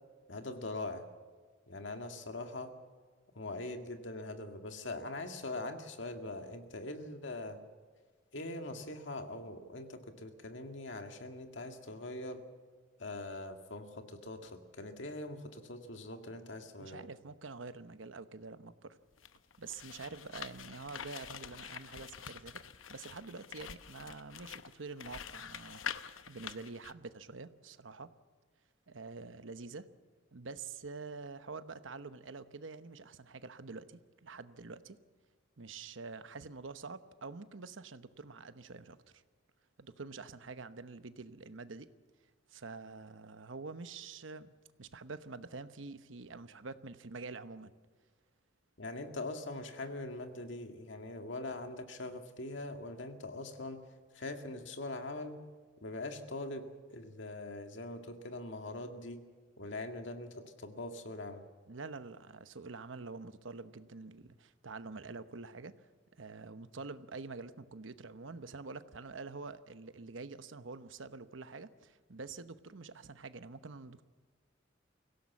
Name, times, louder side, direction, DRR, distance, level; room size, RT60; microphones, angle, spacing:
voice 1, 0.3-1.0 1.7-2.7 3.4-7.6 8.3-12.4 13.0-17.1 48.8-53.8 54.1-55.4 55.8-59.2 59.6-61.4, left 2 dB, 65° left, 5 dB, 2.0 m, -42 dB
voice 2, 16.8-19.0 19.6-28.1 28.9-29.9 30.3-35.0 35.6-39.2 39.8-41.9 42.5-44.5 44.8-47.7 61.7-65.7 66.2-74.0, right 4 dB, 75° right, 12 dB, 1.0 m, -47 dB
sound 1, 19.1-26.9, left 8 dB, 90° left, 0.8 m, -46 dB
24.0 x 16.5 x 7.3 m, 1.5 s
head